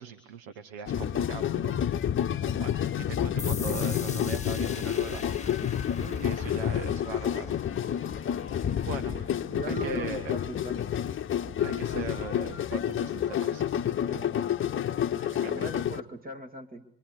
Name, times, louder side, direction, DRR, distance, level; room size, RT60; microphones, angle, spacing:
voice 1, 0.0-1.8 2.6-5.6 6.2-7.6 7.8-8.1 8.9-9.2 9.7-10.3 11.6-13.7 15.1-15.6, right 6 dB, 65° right, 11 dB, 1.7 m, -40 dB
sound 1, 0.9-16.0, left 9 dB, 35° left, 1.1 m, -29 dB
sound 2, 3.4-10.8, left 5 dB, 20° left, 1.6 m, -44 dB
voice 2, 9.0-10.8 14.1-14.4 15.3-16.9, right 2 dB, 25° right, 4 dB, 2.5 m, -40 dB
26.0 x 26.0 x 8.4 m, 0.71 s
figure-of-eight pair, 55°, 33 cm